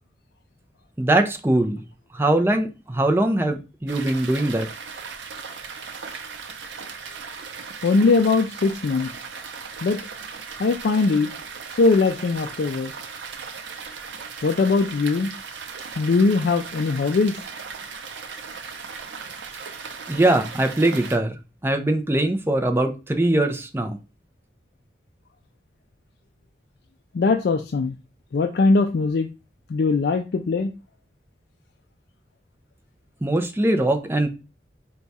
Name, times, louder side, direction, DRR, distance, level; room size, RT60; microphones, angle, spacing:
voice 1, 1.0-1.8 2.1-4.7 20.1-21.4 21.6-24.0 33.2-34.3, right 1 dB, 15° right, 5 dB, 0.5 m, -21 dB
sound 1, 3.9-21.2, right 5 dB, 90° right, 0.6 m, -37 dB
voice 2, 7.8-9.1 9.8-10.0 10.6-11.3 11.8-12.9 14.4-15.3 16.0-17.4 27.1-27.9 28.3-29.3 29.7-30.7, left 3 dB, 60° left, 5 dB, 0.4 m, -20 dB
4.7 x 2.3 x 4.0 m, 0.29 s
head